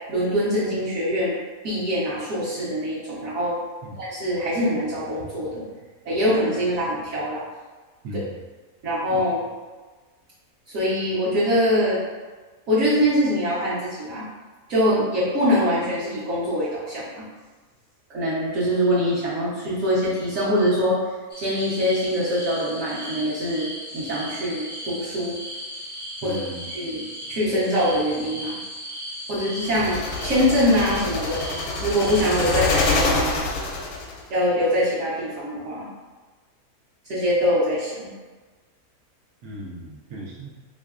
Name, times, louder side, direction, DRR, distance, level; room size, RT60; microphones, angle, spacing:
voice 1, 0.1-1.3 1.6-3.6 3.9-5.6 6.0-7.4 8.8-9.4 10.7-12.0 12.7-14.2 14.7-17.2 18.1-21.0 21.4-25.3 26.2-26.4 26.7-27.0 27.3-28.6 29.3-30.0 30.2-31.4 31.8-33.4 34.3-35.8 37.1-38.1, equal, 65° right, -11 dB, 1.3 m, -23 dB
voice 2, 8.0-8.4 26.2-26.9 29.8-29.9 39.4-40.5, right 1 dB, 80° right, -2 dB, 1.3 m, -37 dB
sound 1, 21.3-33.0, equal, 15° left, 0.3 m, -37 dB
sound 2, 29.6-34.2, left 3 dB, 85° left, 1.1 m, -26 dB
3.6 x 3.2 x 2.3 m, 1.3 s
omnidirectional pair, 1.6 m